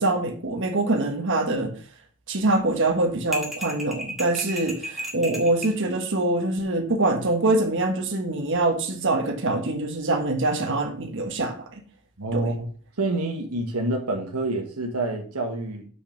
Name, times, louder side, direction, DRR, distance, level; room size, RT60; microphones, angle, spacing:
voice 1, 0.0-1.7 2.3-11.8 12.3-12.4, right 2 dB, 55° right, 1.5 m, -24 dB
sound 1, 3.3-5.8, equal, ahead, 1.8 m, -33 dB
voice 2, 12.2-12.7 13.0-15.9, right 2 dB, 85° right, 1.4 m, -27 dB
6.4 x 6.0 x 5.8 m
head